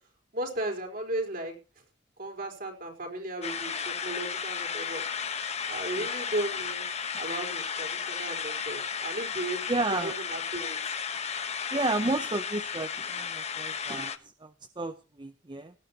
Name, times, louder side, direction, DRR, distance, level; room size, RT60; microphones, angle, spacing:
voice 1, 0.3-1.5 2.2-5.0 5.6-6.9 7.2-10.9, right 1 dB, 50° right, 2 dB, 4.7 m, -35 dB
sound 1, 3.4-14.2, left 6 dB, 35° left, 1.1 m, -34 dB
voice 2, 9.7-10.1 11.7-14.1 14.4-15.7, right 2 dB, 25° right, 10 dB, 0.6 m, -32 dB
18.0 x 13.0 x 2.9 m, 0.33 s
head